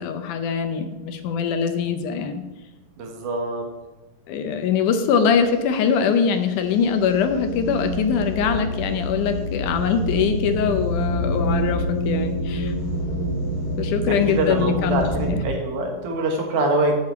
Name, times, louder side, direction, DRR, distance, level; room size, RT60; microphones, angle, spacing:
voice 1, 0.0-2.4 4.3-12.7 13.8-15.4, left 6 dB, 75° left, 7 dB, 2.1 m, -23 dB
voice 2, 3.0-3.6 14.1-17.0, right 2 dB, 65° right, 1 dB, 2.8 m, -24 dB
sound 1, 6.7-15.3, equal, 20° left, 1.4 m, -26 dB
7.0 x 6.9 x 7.9 m, 1.0 s
omnidirectional pair, 4.1 m